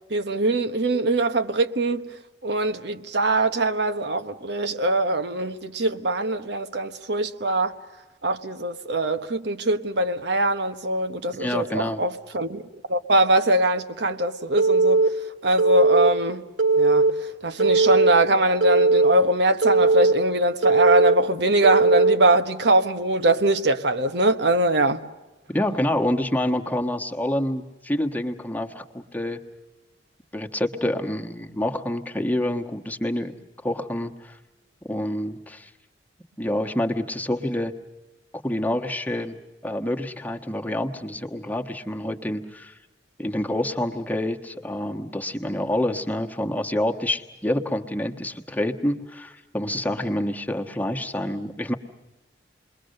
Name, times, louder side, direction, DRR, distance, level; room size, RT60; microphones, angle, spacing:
voice 1, 0.1-2.1 2.4-7.7 8.2-12.6 12.9-15.0 15.4-16.4 16.8-17.1 17.4-25.0, right 1 dB, 65° right, 1.1 m, -22 dB
voice 2, 11.4-12.0 25.5-29.4 30.3-33.3 33.6-34.4 34.9-35.7 36.4-37.7 38.4-39.4 39.6-42.7 43.2-51.8, left 1 dB, 10° left, 1.4 m, -27 dB
Telephone, 14.6-15.1 15.6-16.1 16.6-17.1 17.6-18.1 18.6-19.1 19.6-20.1 20.6-21.1 21.6-22.1, right 3 dB, 85° right, 2.3 m, -18 dB
29.0 x 22.0 x 6.6 m
head